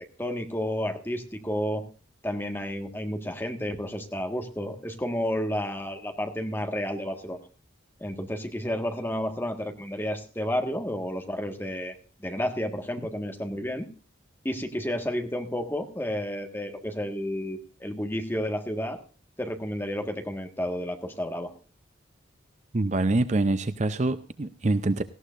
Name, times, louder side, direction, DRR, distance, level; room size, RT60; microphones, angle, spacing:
voice 1, 0.2-1.8 2.2-7.4 8.0-11.9 12.2-13.9 14.4-19.0 19.4-21.5, equal, 10° left, 1.5 m, -31 dB
voice 2, 22.7-25.0, right 2 dB, 35° right, 0.5 m, -25 dB
18.0 x 14.5 x 2.5 m
head